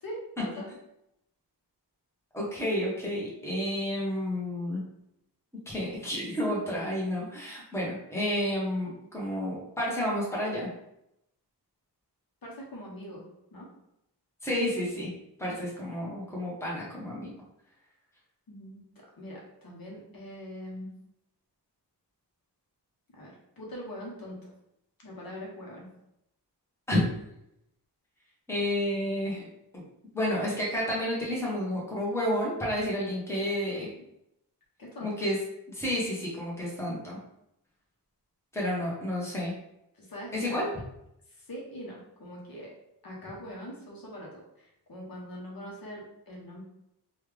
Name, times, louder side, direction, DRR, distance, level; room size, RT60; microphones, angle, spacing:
voice 1, 0.0-0.7 12.4-13.2 13.5-13.7 18.5-20.9 23.1-24.5 25.0-25.9 34.8-35.1 39.9-40.6 41.3-42.7 43.0-46.6, equal, 60° left, -3 dB, 0.9 m, -42 dB
voice 2, 2.3-4.8 5.7-10.7 14.4-15.1 15.4-17.3 26.9-27.0 28.5-29.5 29.7-29.8 30.1-33.9 35.0-35.4 35.7-37.2 38.5-39.5 40.3-40.7, left 1 dB, 5° left, -5 dB, 1.0 m, -30 dB
3.2 x 2.4 x 3.3 m, 0.80 s
wide cardioid pair, 145°, 41 cm